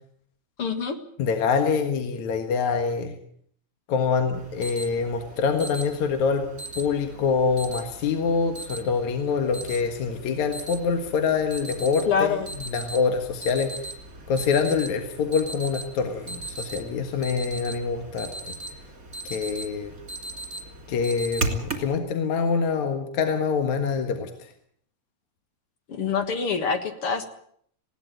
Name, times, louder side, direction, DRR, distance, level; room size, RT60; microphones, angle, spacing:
voice 1, 0.6-1.0 12.1-12.5 25.9-27.2, left 6 dB, 50° left, 8 dB, 2.3 m, -25 dB
voice 2, 1.2-3.2 3.9-6.4 6.8-12.1 12.7-13.8 14.3-18.5 19.2-19.9 20.9-24.3, left 5 dB, 70° left, 6 dB, 2.9 m, -25 dB
Alarm, 4.3-21.9, right 2 dB, 25° right, 3.1 m, -37 dB
20.0 x 17.5 x 9.0 m, 0.65 s
omnidirectional pair, 3.5 m